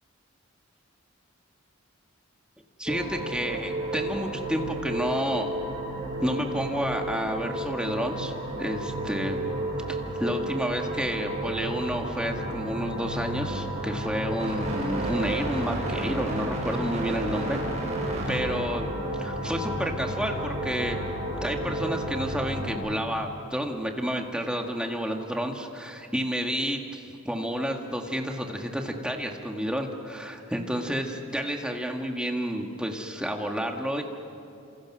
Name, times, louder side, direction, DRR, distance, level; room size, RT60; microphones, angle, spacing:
voice 1, 2.8-5.5 6.2-8.3 8.6-9.4 9.9-17.6 18.3-18.9 19.2-21.0 21.4-34.0, equal, 5° right, 2 dB, 1.8 m, -30 dB
sound 1, 2.9-22.7, right 1 dB, 30° right, 6.8 m, -32 dB
29.5 x 27.0 x 6.2 m, 2.7 s
head